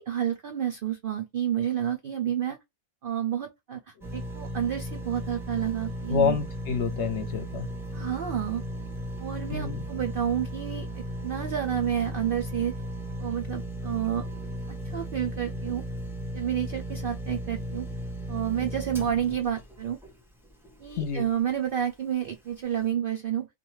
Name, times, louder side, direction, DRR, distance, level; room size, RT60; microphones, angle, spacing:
voice 1, 0.0-2.6 3.0-6.4 7.9-8.6 9.2-12.7 13.2-14.2 14.7-15.8 16.3-17.9 18.3-20.0 20.8-23.5, right 10 dB, 70° right, 0.5 m, -30 dB
sound 1, 4.0-21.2 21.7-21.8, equal, 5° right, 0.4 m, -36 dB
voice 2, 6.1-7.7 9.5-9.8 21.0-21.3, left 6 dB, 60° left, 0.8 m, -27 dB
2.5 x 2.2 x 3.0 m
omnidirectional pair, 1.5 m